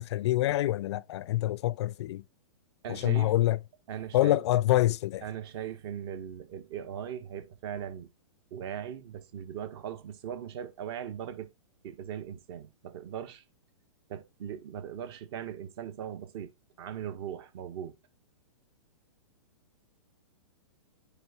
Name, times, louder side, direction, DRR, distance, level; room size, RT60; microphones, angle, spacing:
voice 1, 0.0-2.2 2.9-3.6 4.1-5.2, left 15 dB, 55° left, 0.4 m, -26 dB
voice 2, 2.8-3.3 3.9-4.4 5.2-8.1 8.5-11.5 11.8-13.4 14.1-16.5 16.8-18.0, right 9 dB, 50° right, 1.5 m, -39 dB
9.1 x 3.6 x 4.2 m
hypercardioid pair, 140°, 17 cm